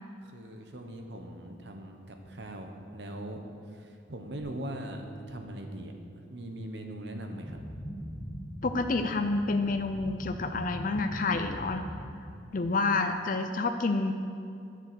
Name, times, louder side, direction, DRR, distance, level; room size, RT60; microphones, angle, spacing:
voice 1, 0.2-3.4 3.7-7.6, right 1 dB, 65° right, 4 dB, 1.1 m, -41 dB
Bass guitar, 4.4-10.6, right 2 dB, 30° right, 2.8 m, -53 dB
sound 1, 7.4-12.4, equal, 25° left, 2.1 m, -41 dB
voice 2, 8.6-11.9 12.5-14.1, left 3 dB, 45° left, 6 dB, 0.5 m, -28 dB
10.5 x 7.5 x 6.9 m, 2.5 s
head